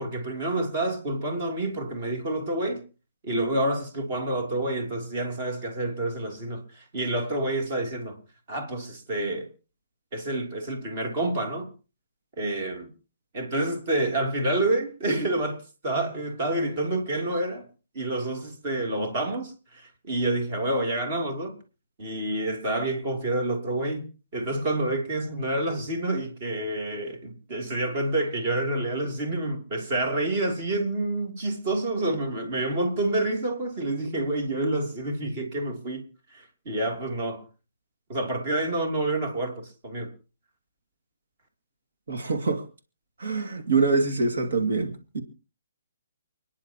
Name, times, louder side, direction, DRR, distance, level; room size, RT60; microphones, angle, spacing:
voice 1, 0.0-2.8 3.2-8.2 8.5-9.5 10.1-11.7 12.4-12.9 13.3-17.7 17.9-21.6 22.0-24.1 24.3-36.0 36.3-37.4 38.1-40.1, right 2 dB, 30° right, 3.1 m, -28 dB
voice 2, 42.1-42.6 43.2-45.2, right 4 dB, 70° right, 2.3 m, -25 dB
30.0 x 10.5 x 3.0 m
hypercardioid pair, 170°, 0 cm